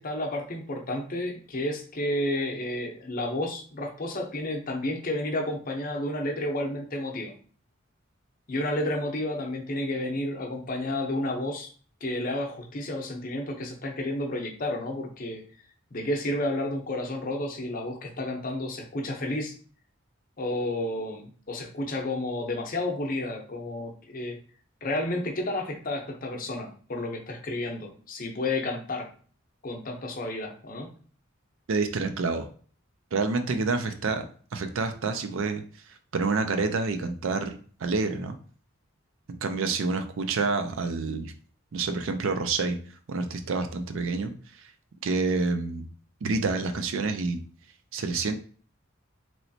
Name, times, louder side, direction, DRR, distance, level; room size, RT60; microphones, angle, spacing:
voice 1, 0.0-7.3 8.5-11.7 12.0-15.4 15.9-19.5 20.4-24.4 24.8-29.1 29.6-30.9, left 1 dB, 40° left, 1 dB, 0.6 m, -31 dB
voice 2, 31.7-32.5 33.1-34.2 34.5-35.6 36.1-38.4 39.3-41.3 41.7-42.8 43.1-44.7 45.0-45.9 46.2-47.4 47.9-48.4, right 4 dB, 70° right, 7 dB, 0.4 m, -28 dB
3.1 x 3.0 x 2.7 m, 0.43 s
head